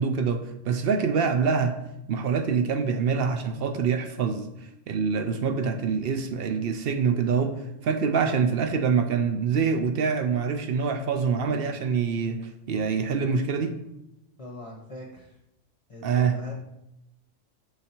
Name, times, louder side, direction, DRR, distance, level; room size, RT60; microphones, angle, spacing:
voice 1, 0.0-1.8 2.1-4.5 4.9-12.4 12.7-13.8 16.0-16.4, right 5 dB, 60° right, 7 dB, 0.6 m, -25 dB
voice 2, 14.4-15.4 15.9-16.5, left 1 dB, 30° left, -2 dB, 0.7 m, -42 dB
6.6 x 4.0 x 4.3 m, 0.87 s
omnidirectional pair, 1.4 m